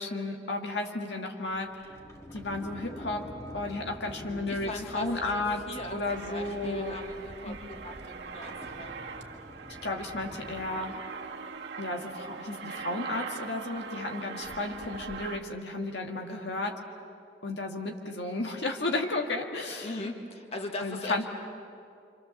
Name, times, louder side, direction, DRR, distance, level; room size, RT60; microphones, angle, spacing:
voice 1, 0.0-1.9 2.3-5.6 5.9-7.0 7.5-7.6 9.8-11.0 11.8-16.7 17.4-20.0 20.8-21.3, left 2 dB, 75° left, 2 dB, 1.9 m, -33 dB
Sliding door, 1.4-10.7, equal, 20° left, 2.5 m, -47 dB
voice 2, 4.5-8.9 16.3-16.6 19.8-21.3, left 2 dB, 35° left, 2 dB, 2.1 m, -40 dB
Aircraft, 6.1-15.4, right 5 dB, 75° right, 1.7 m, -41 dB
27.5 x 27.0 x 7.2 m, 2.4 s
head